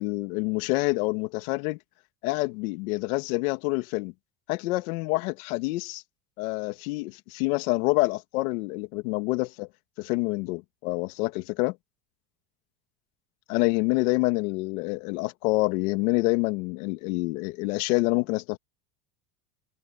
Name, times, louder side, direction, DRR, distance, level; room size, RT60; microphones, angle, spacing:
voice 1, 0.0-1.8 2.2-4.1 4.5-6.0 6.4-9.7 10.0-11.8 13.5-18.6, left 23 dB, 85° left, 2.0 m, -27 dB
cardioid pair, 155°, 42 cm